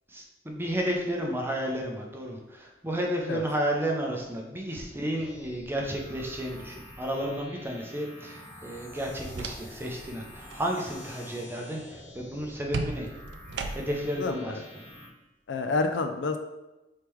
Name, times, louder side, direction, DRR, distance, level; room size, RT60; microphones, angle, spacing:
voice 1, 0.1-13.1 13.7-14.6, equal, 10° right, 0 dB, 0.6 m, -32 dB
sound 1, 5.1-15.1, left 1 dB, 20° left, 1.3 m, -47 dB
sound 2, 9.0-10.0 10.3-10.6 12.7-14.1, right 4 dB, 65° right, 0.4 m, -36 dB
voice 2, 14.2-14.6 15.5-16.4, left 3 dB, 75° left, 6 dB, 0.4 m, -28 dB
3.6 x 3.2 x 4.5 m, 1.0 s
head